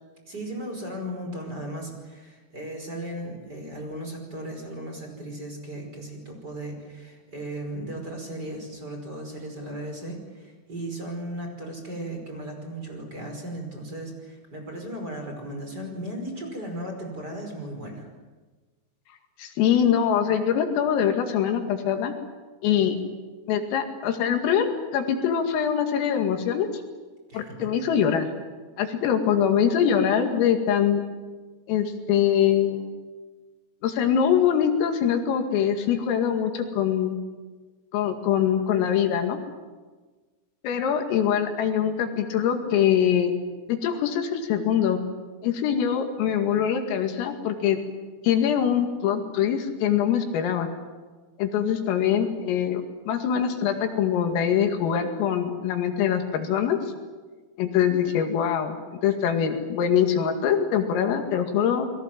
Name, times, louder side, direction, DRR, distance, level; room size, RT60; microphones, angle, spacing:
voice 1, 0.3-18.1 27.3-27.8, right 1 dB, 20° right, 2 dB, 5.3 m, -36 dB
voice 2, 19.4-22.1 22.6-23.0 23.5-26.7 27.3-28.3 28.8-31.0 31.7-32.9 33.8-37.1 37.9-39.4 40.6-43.3 43.7-45.0 45.4-47.8 48.2-50.7 51.4-56.8 57.6-58.8 59.0-61.9, left 8 dB, 90° left, 5 dB, 4.9 m, -23 dB
29.5 x 22.0 x 7.7 m, 1.3 s
omnidirectional pair, 5.8 m